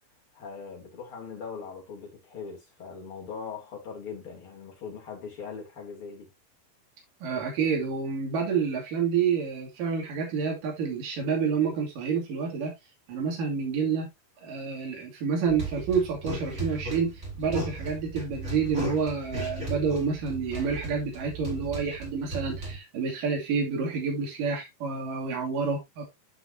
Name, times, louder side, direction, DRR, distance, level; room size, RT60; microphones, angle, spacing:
voice 1, 0.3-6.3, left 5 dB, 35° left, 3.4 m, -40 dB
voice 2, 7.2-12.7 13.1-14.1 14.4-26.0, right 5 dB, 55° right, 4.1 m, -28 dB
sound 1, 15.5-22.8, right 2 dB, 15° right, 3.9 m, -36 dB
10.5 x 5.7 x 2.7 m
omnidirectional pair, 4.7 m